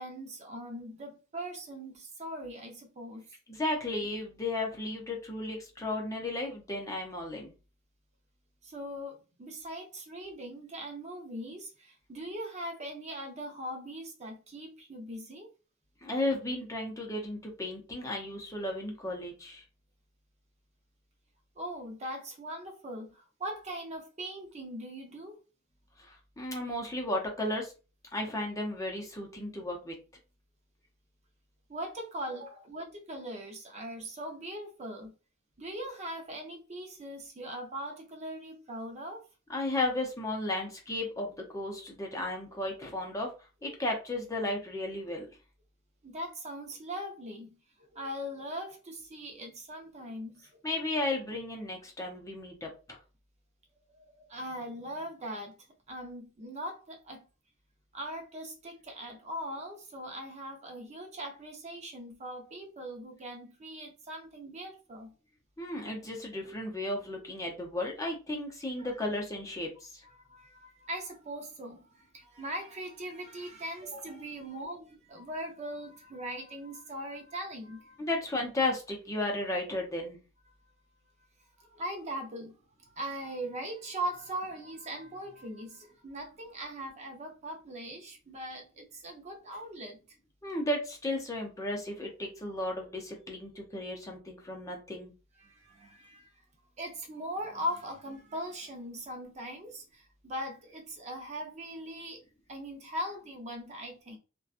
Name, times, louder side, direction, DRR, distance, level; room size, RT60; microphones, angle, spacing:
voice 1, 0.0-3.4 8.6-15.5 21.6-25.4 31.7-35.1 35.6-39.3 46.0-47.6 47.9-50.6 53.9-55.6 55.9-57.2 57.9-65.1 68.8-68.9 70.0-78.0 81.6-90.0 95.4-96.3 96.8-102.2 102.5-104.2, equal, 35° right, 0.5 m, -40 dB
voice 2, 3.5-7.5 16.0-19.6 26.0-27.7 28.1-29.9 39.5-43.3 43.6-45.3 50.6-53.0 65.6-70.0 78.0-80.2 90.4-95.1, left 1 dB, 15° left, 0.6 m, -34 dB
2.8 x 2.2 x 2.4 m
head